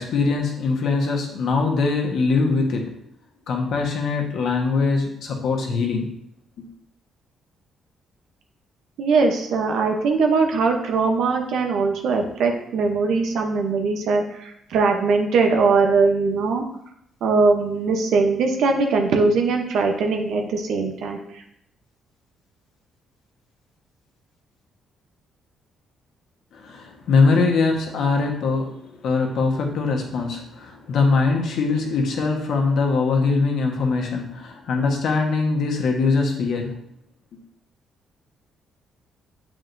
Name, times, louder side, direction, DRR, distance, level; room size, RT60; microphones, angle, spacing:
voice 1, 0.0-2.9 3.5-6.1 6.6-6.7 26.5-36.7, left 4 dB, 70° left, 1 dB, 1.2 m, -22 dB
voice 2, 9.0-16.6 17.2-21.4, right 4 dB, 80° right, 3 dB, 0.8 m, -21 dB
7.6 x 4.8 x 2.6 m, 0.75 s
cardioid pair, 90°, 0 cm